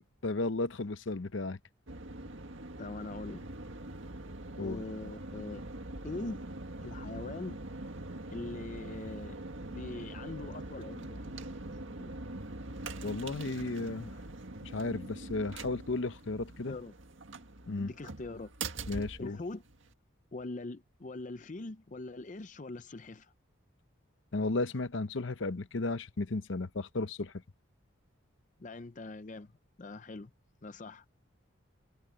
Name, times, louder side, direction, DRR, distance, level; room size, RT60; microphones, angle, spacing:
voice 1, 0.2-1.6 4.6-4.8 13.0-14.1 14.6-16.8 17.7-17.9 18.9-19.4 24.3-27.3, left 3 dB, 65° left, 0.8 m, -34 dB
sound 1, 1.9-19.9, right 2 dB, 70° right, 1.9 m, -43 dB
voice 2, 2.8-3.5 4.6-5.7 6.0-6.5 6.8-7.6 8.3-9.4 9.7-12.1 16.7-16.9 17.8-18.5 19.2-19.6 20.3-23.3 28.6-29.5 29.8-30.3 30.6-31.0, left 2 dB, 35° left, 0.5 m, -42 dB
head